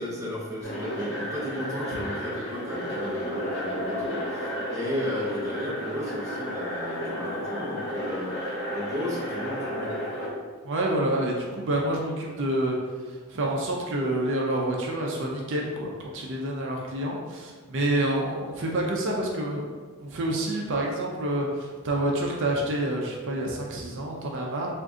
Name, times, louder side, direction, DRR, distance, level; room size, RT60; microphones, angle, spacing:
voice 1, 0.0-10.3, left 1 dB, 15° right, -5 dB, 0.7 m, -34 dB
sound 1, 0.6-10.3, equal, 45° left, 1.3 m, -32 dB
voice 2, 10.6-12.8 13.1-19.6 20.0-24.7, right 1 dB, 55° right, -1 dB, 0.5 m, -28 dB
3.6 x 2.5 x 3.7 m, 1.4 s
head